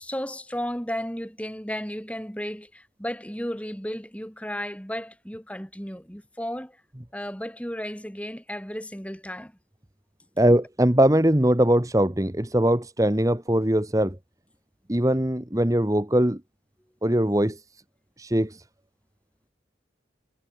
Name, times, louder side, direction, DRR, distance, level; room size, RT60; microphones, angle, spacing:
voice 1, 0.0-6.8 7.1-9.5, equal, 5° left, 5.0 m, -34 dB
voice 2, 10.4-14.2 14.9-16.4 17.0-17.6 18.2-18.6, right 1 dB, 20° right, 1.3 m, -21 dB
head